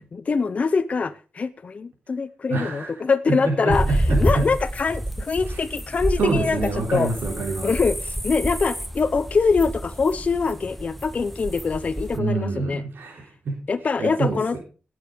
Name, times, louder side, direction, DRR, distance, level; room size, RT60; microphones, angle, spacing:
voice 1, 0.1-6.6 6.9-7.1 7.6-12.8 13.7-14.6, left 4 dB, 40° left, 10 dB, 0.7 m, -24 dB
voice 2, 2.5-3.0 3.3-4.5 5.5-5.6 6.2-7.8 12.1-13.6 14.0-14.6, right 3 dB, 80° right, 0 dB, 3.3 m, -26 dB
sound 1, 3.7-12.2, right 1 dB, ahead, 0.8 m, -28 dB
17.5 x 6.5 x 5.0 m, 0.35 s
wide cardioid pair, 160°, 4 cm